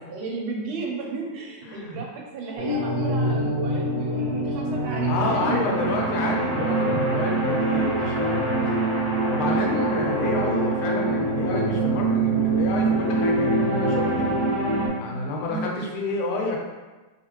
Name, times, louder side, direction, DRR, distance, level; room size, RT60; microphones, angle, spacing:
voice 1, 0.1-6.0 6.2-6.3 9.4-9.9 15.5-15.7, right 3 dB, 80° right, 0 dB, 1.4 m, -35 dB
voice 2, 1.6-2.0 5.1-8.7 9.3-14.3 15.0-16.6, left 2 dB, 85° left, 0 dB, 1.5 m, -29 dB
sound 1, 2.6-14.9, right 2 dB, 45° right, 0.8 m, -24 dB
3.4 x 2.4 x 3.0 m, 1.2 s
omnidirectional pair, 2.3 m